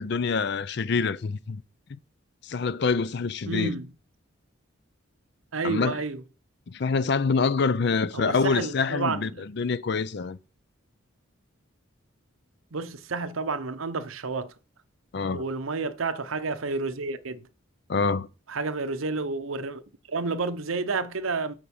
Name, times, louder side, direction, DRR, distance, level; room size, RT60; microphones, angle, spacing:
voice 1, 0.0-1.6 2.4-3.7 5.6-6.0 6.7-9.3 9.6-10.4 15.1-15.4 17.9-18.3, left 4 dB, 55° left, 0.5 m, -26 dB
voice 2, 3.5-3.9 5.5-6.2 8.1-9.4 12.7-14.5 15.3-17.5 18.5-19.8 20.1-21.5, right 3 dB, 85° right, 0.8 m, -30 dB
9.0 x 4.8 x 7.1 m
head